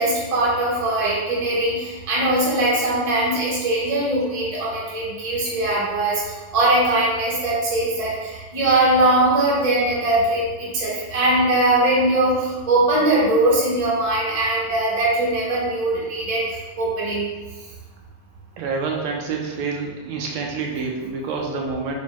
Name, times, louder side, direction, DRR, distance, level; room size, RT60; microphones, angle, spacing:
voice 1, 0.0-16.4 16.8-17.3, right 2 dB, 35° right, -6 dB, 0.5 m, -21 dB
voice 2, 18.6-21.9, right 4 dB, 85° right, 0 dB, 1.6 m, -27 dB
4.2 x 2.1 x 4.5 m, 1.3 s
omnidirectional pair, 2.3 m